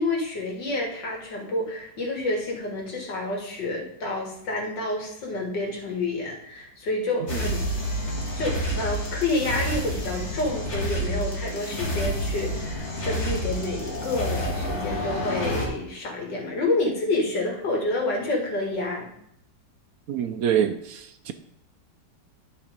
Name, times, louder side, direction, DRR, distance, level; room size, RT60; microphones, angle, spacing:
voice 1, 0.0-7.6 8.4-19.1, left 2 dB, 90° left, 0 dB, 2.6 m, -28 dB
sound 1, 7.3-15.7, equal, 40° left, 2.0 m, -29 dB
voice 2, 20.1-21.3, right 9 dB, 70° right, 9 dB, 0.9 m, -25 dB
11.5 x 4.5 x 5.1 m, 0.75 s
omnidirectional pair, 1.9 m